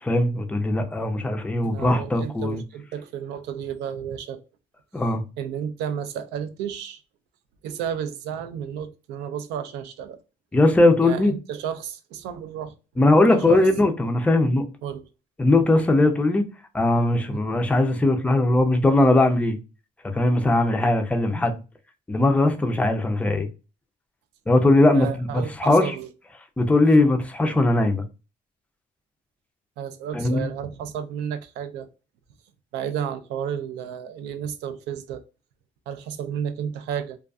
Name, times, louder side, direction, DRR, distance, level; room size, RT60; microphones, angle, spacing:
voice 1, 0.0-2.6 4.9-5.2 10.5-11.4 13.0-14.6 15.4-16.4 16.7-19.6 20.1-21.6 22.1-23.5 24.5-25.1 25.3-25.9 26.6-28.0 30.1-30.5, left 2 dB, 10° left, 0.4 m, -19 dB
voice 2, 1.6-4.4 5.4-7.0 7.6-10.2 11.0-12.7 13.3-13.6 14.8-15.0 17.3-17.4 24.9-26.1 29.8-31.9 32.7-35.2 35.9-37.2, right 8 dB, 90° right, 0.4 m, -32 dB
2.5 x 2.3 x 2.3 m
cardioid pair, 110°, 17 cm